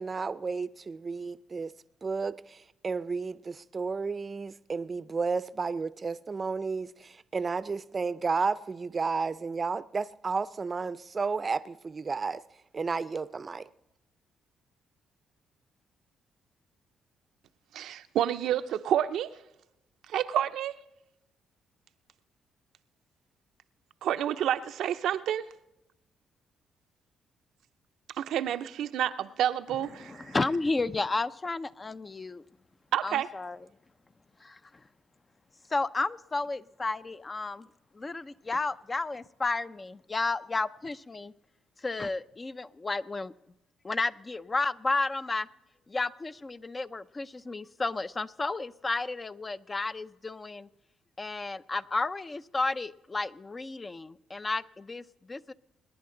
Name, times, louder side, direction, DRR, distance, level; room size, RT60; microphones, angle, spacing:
voice 1, 0.0-1.7 2.0-12.4 12.7-13.7, right 4 dB, 35° right, 0.5 m, -32 dB
voice 2, 17.7-19.4 20.1-20.7 24.0-25.5 28.2-30.5 32.9-33.3, right 10 dB, 80° right, 0.5 m, -29 dB
voice 3, 30.0-32.4 33.0-33.6 34.4-34.6 35.7-37.7 37.9-41.3 41.8-43.3 43.8-45.5 45.9-50.7 51.2-55.5, left 3 dB, 25° left, 0.5 m, -32 dB
26.5 x 10.5 x 3.8 m
cardioid pair, 90°, 0 cm